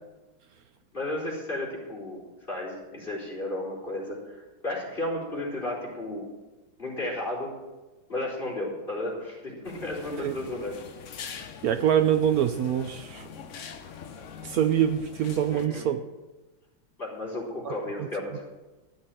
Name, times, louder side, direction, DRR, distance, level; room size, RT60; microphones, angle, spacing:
voice 1, 0.9-6.2 6.8-7.5 8.1-10.8 15.5-15.8 17.0-18.4, left 1 dB, 25° left, -4 dB, 4.0 m, -33 dB
sound 1, 9.6-15.7, left 7 dB, 55° left, 0.8 m, -43 dB
voice 2, 11.6-13.3 14.4-16.0 17.6-17.7 18.0-18.1, right 9 dB, 75° right, 9 dB, 0.8 m, -25 dB
13.0 x 6.6 x 8.6 m, 1.1 s
omnidirectional pair, 2.2 m